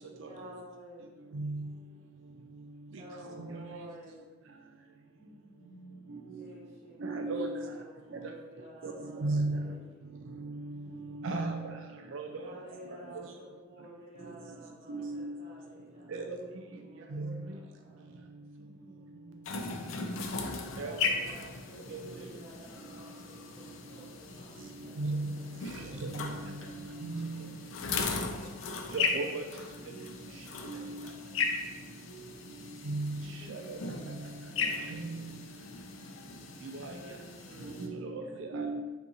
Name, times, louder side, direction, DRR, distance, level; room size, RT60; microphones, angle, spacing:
voice 1, 0.0-1.2 3.0-4.3 6.3-10.3 12.4-16.3 16.5-18.2 20.7-26.0 28.1-29.0 33.4-34.0 37.0-37.8, right 1 dB, 35° right, -8 dB, 1.5 m, -52 dB
voice 2, 1.3-1.8 5.2-6.1 10.5-11.4 18.6-19.3 26.1-26.8 31.5-31.9 34.5-35.1, right 1 dB, 20° left, -7 dB, 1.0 m, -56 dB
voice 3, 7.0-7.5 8.8-8.9 9.2-9.6 11.2-11.6 12.1-12.2 14.9-15.3 16.1-16.2 17.1-17.3 20.8-20.9 21.9-22.0 25.0-25.3 26.0-26.1 27.0-27.3 28.9-29.4 30.7-30.8 32.9-33.1 33.7-33.8 34.9-35.2 38.1-38.8, right 3 dB, 75° right, 3 dB, 0.4 m, -33 dB
sound 1, 19.4-37.9, left 4 dB, 85° left, 0.4 m, -37 dB
5.2 x 2.5 x 2.8 m, 1.2 s
head